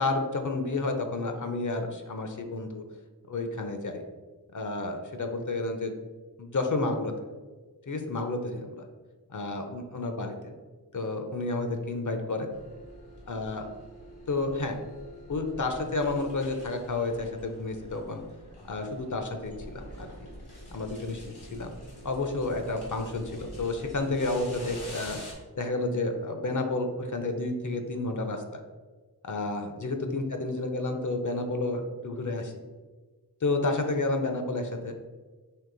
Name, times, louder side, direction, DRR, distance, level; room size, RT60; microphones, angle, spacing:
voice 1, 0.0-2.8 3.3-4.0 4.5-5.9 6.4-7.1 7.9-8.8 9.3-10.5 10.9-12.5 13.3-13.7 14.3-14.7 15.3-18.2 18.7-20.3 20.7-21.7 22.0-25.2 25.6-28.6 29.2-32.5 33.4-34.9, left 2 dB, 50° left, 5 dB, 0.6 m, -31 dB
sound 1, 12.5-25.3, equal, 80° left, 1.4 m, -46 dB
4.6 x 2.9 x 3.8 m, 1.3 s
wide cardioid pair, 40°, 39 cm